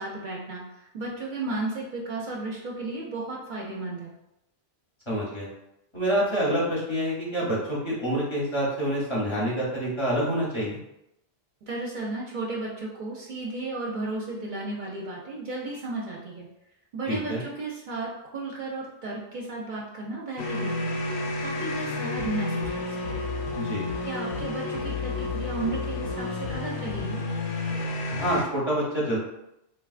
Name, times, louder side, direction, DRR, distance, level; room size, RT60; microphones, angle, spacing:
voice 1, 0.0-4.1 11.6-16.5 16.9-21.0 21.4-23.2 24.0-27.2, right 2 dB, 55° right, -3 dB, 0.6 m, -34 dB
voice 2, 5.1-5.5 5.9-10.8 17.1-17.4 23.5-23.8 28.1-29.2, equal, 30° left, -6 dB, 0.7 m, -27 dB
sound 1, 20.4-28.5, left 2 dB, 80° left, 0.9 m, -30 dB
3.8 x 2.3 x 2.4 m, 0.85 s
omnidirectional pair, 1.1 m